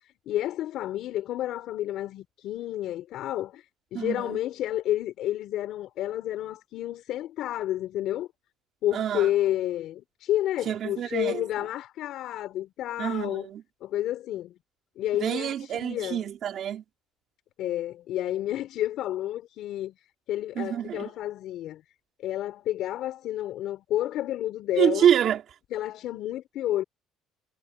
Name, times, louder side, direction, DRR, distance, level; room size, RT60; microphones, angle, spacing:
voice 1, 0.3-3.6 3.9-8.3 8.8-13.5 13.8-14.5 15.0-16.2 17.6-20.0 20.3-21.8 22.2-25.1 25.7-26.8, left 13 dB, 55° left, 6.1 m, -30 dB
voice 2, 3.9-4.4 8.9-9.3 10.6-11.4 13.0-13.6 15.2-16.8 20.5-21.1 24.8-25.4, right 10 dB, 40° right, 5.3 m, -26 dB
cardioid pair, 180°, 0 cm